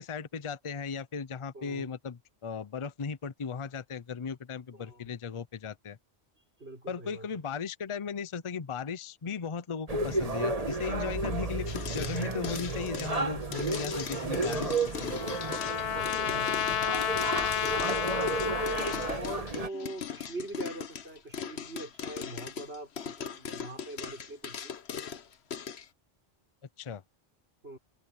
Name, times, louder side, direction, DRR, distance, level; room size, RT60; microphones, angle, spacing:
voice 1, 0.0-6.0 6.9-15.2 26.8-27.0, left 6 dB, 35° left, 0.7 m, -37 dB
voice 2, 1.5-1.9 4.7-5.1 6.6-7.3 15.9-17.0 17.6-24.7 27.6-27.8, right 1 dB, 80° right, 6.4 m, -42 dB
sound 1, 9.9-19.7, right 3 dB, 35° right, 1.4 m, -33 dB
sound 2, 11.7-25.9, left 7 dB, 90° left, 1.3 m, -40 dB
Trumpet, 14.5-19.2, left 9 dB, 75° left, 0.9 m, -31 dB
omnidirectional pair, 1.1 m